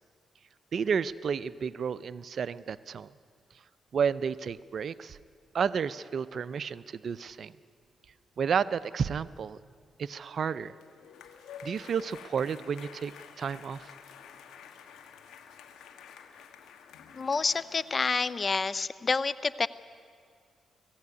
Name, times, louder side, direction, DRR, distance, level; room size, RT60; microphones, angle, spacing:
voice 1, 0.7-3.1 3.9-5.2 5.5-7.5 8.4-9.6 10.0-10.7 11.6-13.1 13.4-13.9, right 6 dB, 60° right, 16 dB, 0.5 m, -31 dB
sound 1, 10.5-18.4, left 7 dB, 85° left, 1.5 m, -50 dB
voice 2, 17.1-19.7, left 4 dB, 40° left, 17 dB, 0.6 m, -28 dB
18.5 x 15.5 x 9.6 m, 2.1 s
cardioid pair, 70°, 0 cm